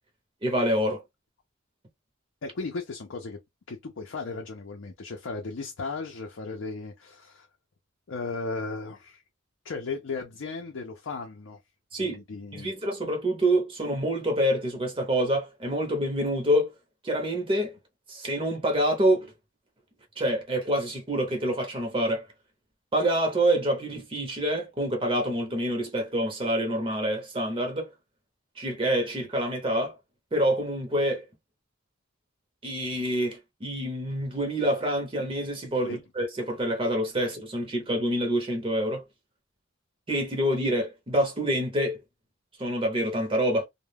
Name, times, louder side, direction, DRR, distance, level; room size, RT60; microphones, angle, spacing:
voice 1, 0.4-1.0 11.9-12.2 12.5-16.7 17.0-17.8 18.1-19.3 20.2-22.3 22.9-27.9 28.6-30.0 30.3-31.3 32.6-39.0 40.1-42.0 42.6-43.6, right 1 dB, 25° right, 0.6 m, -26 dB
voice 2, 2.4-3.4 3.7-7.5 8.1-9.2 9.6-11.6 12.0-12.7 35.8-36.0, left 4 dB, 70° left, 0.5 m, -36 dB
2.2 x 2.1 x 3.3 m
head